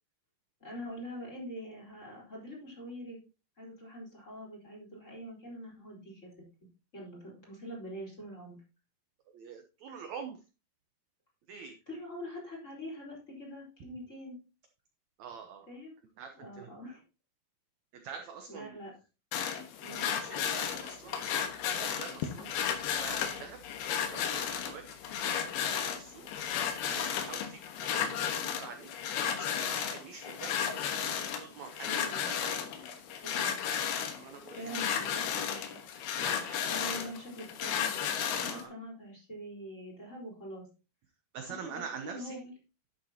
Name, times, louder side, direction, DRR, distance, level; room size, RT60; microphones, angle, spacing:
voice 1, 0.6-3.2 3.6-6.3 6.9-8.6 11.5-14.4 15.7-15.9 16.3-17.0 18.5-18.9 19.8-20.1 31.8-32.3 33.1-33.6 34.2-35.8 36.6-37.9 38.3-40.7 41.4-42.5, equal, 20° left, -3 dB, 4.1 m, -44 dB
voice 2, 9.3-10.4 11.5-11.8 15.2-15.7 16.2-16.7 17.9-18.8 20.1-22.5 23.0-23.6 24.0-24.9 25.2-25.6 25.9-26.3 26.8-30.6 30.9-32.6 34.2-34.8 36.2-37.1 38.4-38.7 41.3-42.4, right 6 dB, 75° right, 5 dB, 1.6 m, -46 dB
sound 1, 19.3-38.7, left 8 dB, 85° left, 3.2 m, -34 dB
11.0 x 8.3 x 2.8 m, 0.30 s
omnidirectional pair, 4.4 m